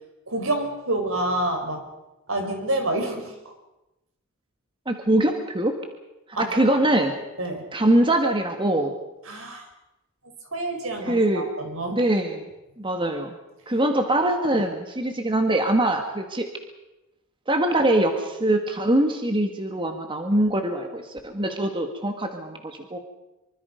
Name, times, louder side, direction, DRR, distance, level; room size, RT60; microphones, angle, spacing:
voice 1, 0.3-1.8 2.3-3.3 6.3-6.8 7.4-7.7 9.3-9.7 10.5-12.0, right 1 dB, 70° right, 4 dB, 5.0 m, -28 dB
voice 2, 4.9-5.7 6.4-7.1 7.7-9.0 11.1-11.5 11.9-12.5 12.8-13.4 13.7-16.5 17.5-23.0, right 1 dB, 25° right, 4 dB, 1.9 m, -23 dB
25.0 x 24.5 x 5.3 m, 0.97 s
head